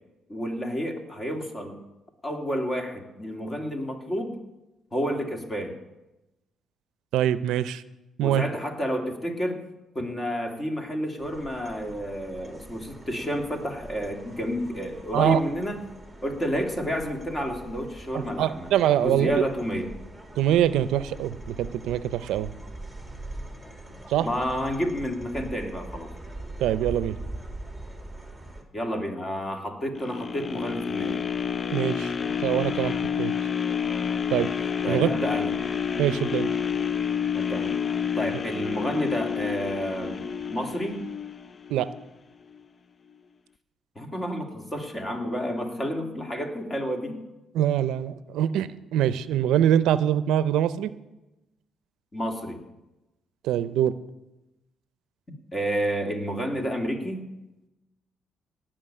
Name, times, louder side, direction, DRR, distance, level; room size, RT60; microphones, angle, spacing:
voice 1, 0.3-1.8 2.2-4.4 4.9-5.8 8.2-9.6 9.9-15.8 16.2-18.7 19.0-19.9 24.2-26.1 28.7-31.3 34.8-35.5 37.3-37.8 38.2-41.1 44.0-47.2 52.1-52.6 55.5-57.3, equal, 25° left, 3 dB, 2.5 m, -30 dB
voice 2, 7.1-7.8 8.2-8.4 15.1-15.4 18.1-19.4 20.4-22.5 24.1-24.3 26.6-27.2 31.7-33.3 34.3-34.5 34.9-35.1 36.0-36.5 41.7-41.9 47.5-50.9 53.4-53.9, right 11 dB, 90° right, 15 dB, 0.5 m, -24 dB
sound 1, 11.2-28.6, right 1 dB, 5° left, 2.4 m, -42 dB
sound 2, 30.0-42.1 42.5-42.6, left 7 dB, 40° left, 0.4 m, -29 dB
17.5 x 6.2 x 8.9 m, 1.0 s
cardioid pair, 90°, 0 cm